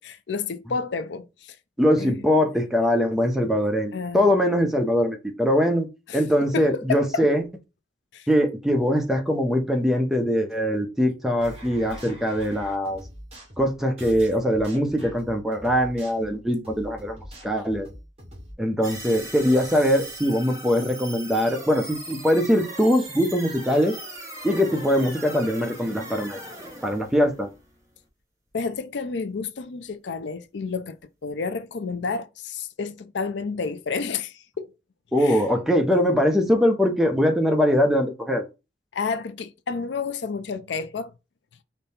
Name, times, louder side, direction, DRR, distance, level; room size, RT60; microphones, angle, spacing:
voice 1, 0.0-1.6 2.0-2.1 3.9-4.4 6.1-6.2 6.5-7.2 8.1-8.3 28.5-31.0 31.2-34.7 35.2-35.4 38.9-41.1, left 4 dB, 75° left, 0.5 m, -30 dB
voice 2, 1.8-5.9 6.1-7.4 8.3-13.0 13.6-17.2 17.4-17.9 18.6-24.0 24.4-26.4 26.8-27.5 35.1-38.4, equal, ahead, 0.7 m, -22 dB
sound 1, 11.4-18.5, equal, 35° right, 2.5 m, -43 dB
sound 2, 18.8-28.1, right 1 dB, 15° right, 1.1 m, -39 dB
5.2 x 2.2 x 4.1 m
head